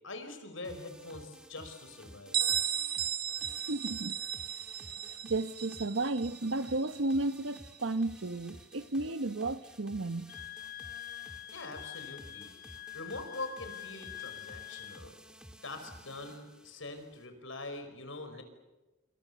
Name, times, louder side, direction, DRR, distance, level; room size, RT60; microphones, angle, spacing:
voice 1, 0.0-2.4 11.5-12.5 12.9-15.2 15.6-18.4, left 2 dB, 85° left, 5.3 m, -43 dB
sound 1, 0.6-17.3, equal, 5° right, 2.0 m, -54 dB
Bell, 2.3-7.8, right 10 dB, 50° right, 1.0 m, -35 dB
voice 2, 3.7-4.1 5.2-10.3, right 2 dB, 85° right, 1.1 m, -33 dB
Wind instrument woodwind instrument, 10.3-15.0, left 14 dB, 45° left, 1.0 m, -45 dB
27.5 x 27.0 x 6.9 m
head